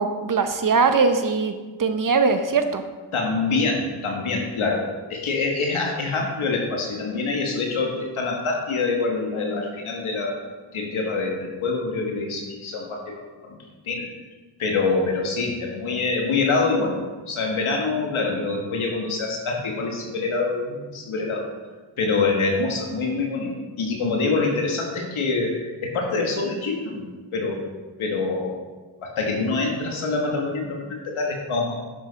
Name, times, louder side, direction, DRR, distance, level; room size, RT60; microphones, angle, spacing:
voice 1, 0.0-2.8, right 4 dB, 45° right, 8 dB, 0.9 m, -21 dB
voice 2, 3.1-4.8 5.1-10.4 10.7-13.6 13.9-14.1 14.6-17.0 17.3-21.5 22.0-27.6 28.0-28.6 29.0-31.7, left 3 dB, 85° left, 0 dB, 1.6 m, -25 dB
10.0 x 6.7 x 4.2 m, 1.3 s
cardioid pair, 90°, 47 cm